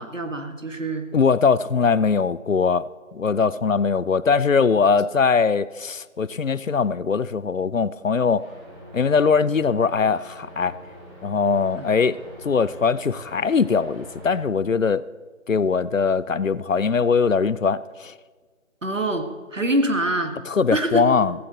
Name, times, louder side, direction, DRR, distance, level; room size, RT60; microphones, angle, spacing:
voice 1, 0.0-1.1 11.8-11.9 18.8-20.3 20.7-21.1, right 1 dB, 65° right, 1.9 m, -25 dB
voice 2, 1.1-2.8 3.1-8.5 8.9-10.7 11.2-12.2 12.4-15.0 15.5-18.1 20.5-21.3, left 5 dB, 70° left, 0.6 m, -21 dB
sound 1, 8.3-14.4, equal, ahead, 4.6 m, -44 dB
15.5 x 15.5 x 4.0 m
figure-of-eight pair, 170°, 41 cm